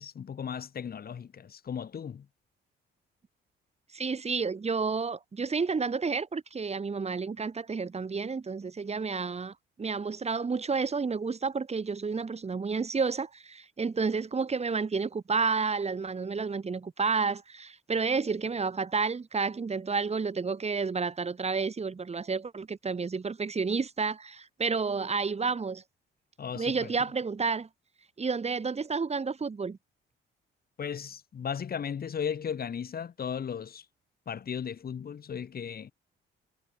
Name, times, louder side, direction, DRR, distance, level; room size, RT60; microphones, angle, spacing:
voice 1, 0.0-2.3 26.4-27.0 30.8-33.8 34.3-35.9, left 7 dB, 50° left, 3.1 m, -36 dB
voice 2, 3.9-25.8 26.6-27.7 28.2-29.8, right 4 dB, 30° right, 3.6 m, -30 dB
cardioid pair, 90°, 20 cm